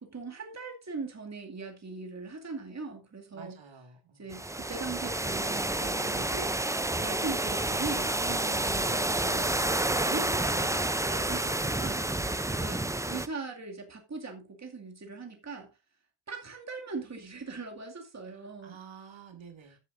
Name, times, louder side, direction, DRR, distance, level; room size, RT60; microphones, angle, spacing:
voice 1, 0.0-3.6 4.2-6.5 7.0-15.7 16.3-18.8, right 4 dB, 35° right, 2.3 m, -40 dB
voice 2, 3.3-4.3 18.2-19.8, right 7 dB, 70° right, 2.3 m, -50 dB
sound 1, 4.3-13.3, right 2 dB, 5° right, 0.5 m, -29 dB
13.5 x 8.5 x 2.6 m
wide cardioid pair, 100°, 48 cm